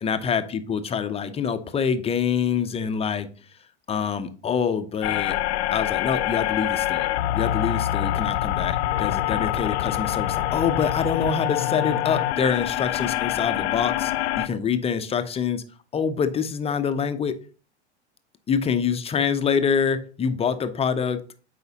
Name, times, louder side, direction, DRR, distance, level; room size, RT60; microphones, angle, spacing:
voice 1, 0.0-3.3 3.9-5.4 5.7-14.1 14.4-15.6 15.9-17.4 18.5-21.2, left 6 dB, 15° left, 10 dB, 0.6 m, -25 dB
sound 1, 5.0-14.5, left 13 dB, 65° left, 0.5 m, -25 dB
7.9 x 4.9 x 2.7 m, 0.38 s
hypercardioid pair, 90°, 35 cm